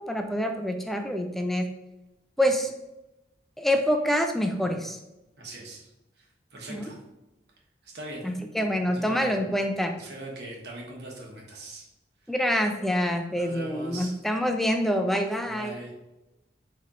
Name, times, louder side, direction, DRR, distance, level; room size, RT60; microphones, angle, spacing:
voice 1, 0.0-1.7 2.4-2.7 3.6-5.0 6.7-6.9 8.2-10.0 12.3-15.8, equal, ahead, 4 dB, 0.3 m, -26 dB
voice 2, 5.4-5.9 6.2-6.3 6.5-7.0 7.8-8.2 8.9-9.3 9.9-11.9 13.3-14.1 15.4-15.9, right 1 dB, 65° right, -1 dB, 1.1 m, -40 dB
5.4 x 3.3 x 2.4 m, 0.95 s
head